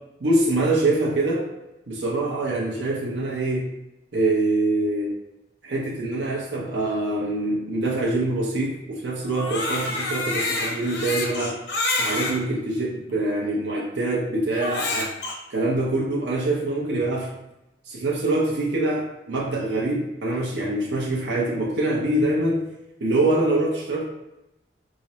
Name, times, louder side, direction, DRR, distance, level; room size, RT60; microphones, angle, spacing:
voice 1, 0.2-1.5 1.9-3.7 4.1-5.2 5.6-11.6 12.0-15.1 15.5-17.3 17.9-22.7 23.0-24.1, right 2 dB, 70° right, -4 dB, 0.6 m, -24 dB
Crying sobbing, 9.2-12.4 13.1-13.2 14.5-15.3, left 2 dB, 70° left, 0.7 m, -27 dB
4.7 x 2.0 x 2.8 m, 0.93 s
head